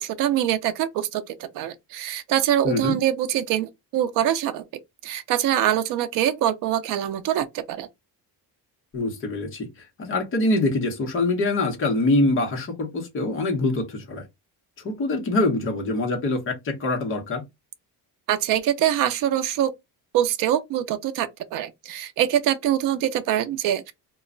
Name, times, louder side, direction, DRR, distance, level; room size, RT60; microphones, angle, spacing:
voice 1, 0.0-4.6 5.0-7.9 18.3-19.7 20.1-23.9, right 11 dB, 60° right, 0.4 m, -24 dB
voice 2, 2.6-3.0 8.9-14.2 14.8-17.4, left 2 dB, 35° left, 0.8 m, -24 dB
2.2 x 2.0 x 3.6 m
cardioid pair, 180°, 39 cm